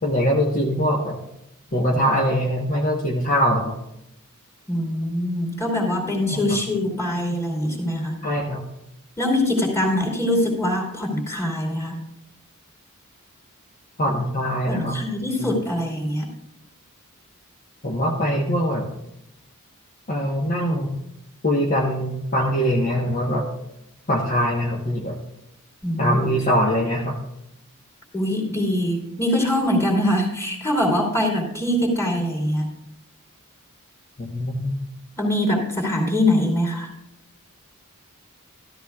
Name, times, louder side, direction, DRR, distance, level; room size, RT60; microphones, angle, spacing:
voice 1, 0.0-1.2 1.7-3.8 6.3-6.4 8.2-8.6 14.0-15.0 15.4-15.5 17.8-18.9 20.1-20.9 21.4-23.5 24.1-25.2 26.0-27.2 34.2-34.8, equal, 40° left, -2 dB, 1.2 m, -22 dB
voice 2, 4.7-8.1 9.2-12.0 14.7-16.3 25.8-26.1 28.1-32.7 35.2-36.9, left 1 dB, 15° left, 0 dB, 2.9 m, -23 dB
14.0 x 13.5 x 2.4 m, 0.83 s
head